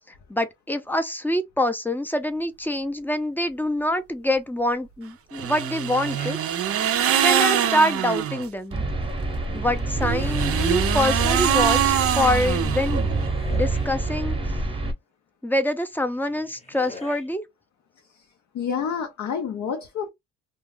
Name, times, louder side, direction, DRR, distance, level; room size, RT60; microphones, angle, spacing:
voice 1, 0.3-6.4 6.7-8.8 9.5-13.1 13.5-14.4 15.4-17.4, left 1 dB, 5° left, 0.5 m, -25 dB
sound 1, 5.3-8.5 9.9-13.3, right 10 dB, 50° right, 0.4 m, -24 dB
sound 2, 6.0-6.4 7.0-7.4 9.4-10.8 12.5-14.0 15.9-17.3, left 3 dB, 20° left, 0.8 m, -44 dB
sound 3, 8.7-14.9, right 2 dB, 15° right, 0.8 m, -26 dB
voice 2, 18.5-20.1, left 7 dB, 70° left, 0.6 m, -28 dB
2.3 x 2.2 x 3.2 m
cardioid pair, 90°, 30 cm